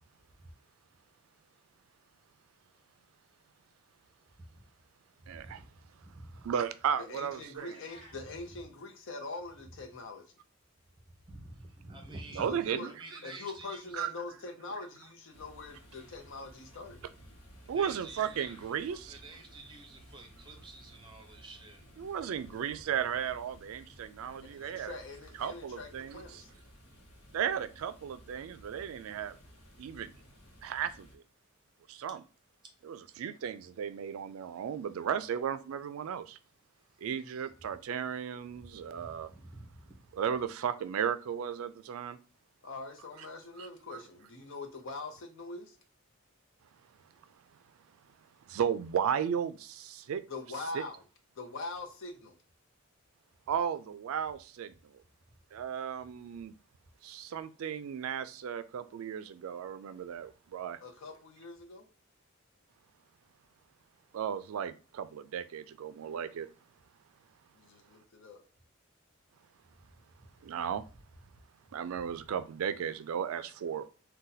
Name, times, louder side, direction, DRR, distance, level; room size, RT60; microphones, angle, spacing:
voice 1, 4.3-4.6 5.2-6.5 8.2-8.6 11.1-12.6 12.8-14.1 17.6-18.5 18.8-21.8 32.6-32.7 36.7-37.0 38.5-39.9 69.8-70.4 71.3-71.4, right 2 dB, 20° right, 0.7 m, -50 dB
voice 2, 5.3-5.6 6.4-7.8 12.4-12.9 13.9-14.1 17.7-19.1 22.0-24.9 25.4-26.4 27.3-29.3 29.8-30.1 30.6-31.1 31.9-32.2 32.9-36.4 37.0-39.3 40.2-42.2 43.9-44.0 48.5-50.2 50.7-50.8 53.5-54.7 55.5-56.5 57.0-60.8 64.1-66.5 70.4-70.8 71.7-73.8, right 8 dB, 75° right, 0.3 m, -35 dB
voice 3, 7.0-10.3 12.4-12.9 13.2-17.0 22.3-22.8 24.4-26.5 42.6-45.8 50.3-51.0 51.4-52.4 60.8-61.9 67.5-68.4, left 3 dB, 65° left, 0.7 m, -43 dB
sound 1, 7.6-8.2, left 1 dB, 25° left, 1.2 m, -54 dB
sound 2, 15.3-31.2, equal, 90° left, 0.9 m, -56 dB
2.6 x 2.2 x 3.9 m
head